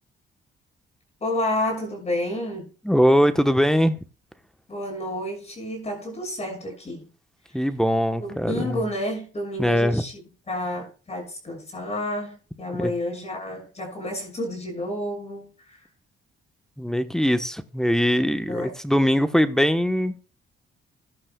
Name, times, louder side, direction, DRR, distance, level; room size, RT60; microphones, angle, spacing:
voice 1, 1.2-2.7 4.7-7.1 8.2-10.1 10.5-15.9 18.5-18.7, left 1 dB, 35° left, 6.5 m, -30 dB
voice 2, 2.8-4.0 7.5-8.8 9.6-10.0 12.8-12.9 16.8-20.2, equal, 5° left, 1.1 m, -21 dB
15.0 x 11.0 x 2.3 m
cardioid pair, 90°, 20 cm